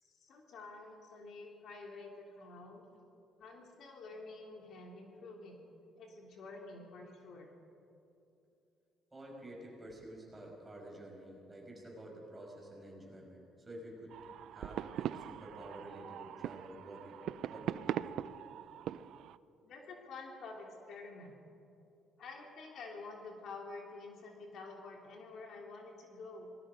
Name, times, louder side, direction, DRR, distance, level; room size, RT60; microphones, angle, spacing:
voice 1, 0.0-2.9 3.4-5.6 6.0-7.5 19.6-21.3 22.2-26.5, left 3 dB, 60° left, 1 dB, 3.1 m, -49 dB
voice 2, 9.1-14.2 14.5-17.2 17.5-18.2, right 1 dB, 15° right, -1 dB, 5.7 m, -50 dB
sound 1, 14.1-19.4, right 11 dB, 70° right, 0.5 m, -41 dB
28.0 x 20.0 x 5.2 m, 2.8 s
cardioid pair, 130°, 0 cm